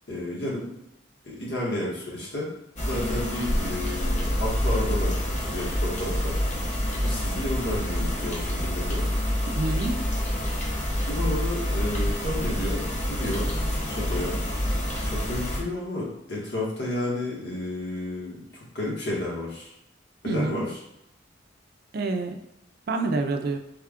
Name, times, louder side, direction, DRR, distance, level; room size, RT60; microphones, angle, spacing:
voice 1, 0.1-0.7 1.2-2.5 2.8-6.3 7.0-9.1 11.1-13.5 13.9-14.4 15.0-19.7 20.2-20.8, left 1 dB, 65° left, -5 dB, 1.3 m, -31 dB
sound 1, 2.8-15.6, equal, 40° left, 0.8 m, -27 dB
voice 2, 9.5-10.0 20.2-20.6 21.9-22.4 22.9-23.6, right 3 dB, 55° right, 5 dB, 0.4 m, -27 dB
3.4 x 2.3 x 3.5 m, 0.85 s
head